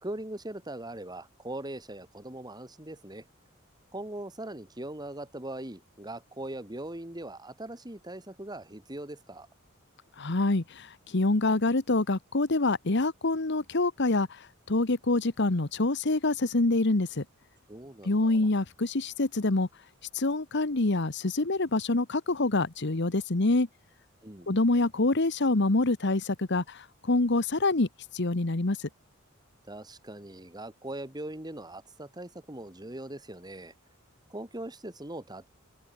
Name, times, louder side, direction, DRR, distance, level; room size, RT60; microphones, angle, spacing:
voice 1, 0.0-3.3 3.9-9.5 17.7-18.5 24.2-24.7 29.7-33.7 34.3-35.5, right 1 dB, 20° right, 2.7 m, -40 dB
voice 2, 10.2-17.2 18.0-19.7 20.1-23.7 24.5-27.9 28.1-28.9, left 2 dB, 55° left, 1.3 m, -26 dB
head